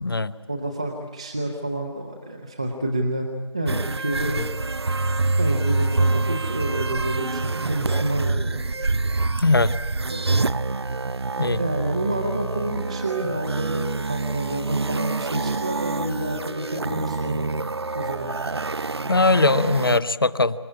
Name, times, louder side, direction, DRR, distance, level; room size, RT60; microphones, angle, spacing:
voice 1, 0.5-3.3 3.5-4.5 5.4-8.7 10.1-10.5 11.6-17.5 17.9-18.3, right 1 dB, 15° right, 0 dB, 0.7 m, -29 dB
sound 1, 3.7-20.0, right 3 dB, 65° right, 0.6 m, -26 dB
voice 2, 19.1-20.5, left 3 dB, 50° left, 15 dB, 0.8 m, -20 dB
27.0 x 13.5 x 9.7 m, 1.5 s
figure-of-eight pair, 175°, 15 cm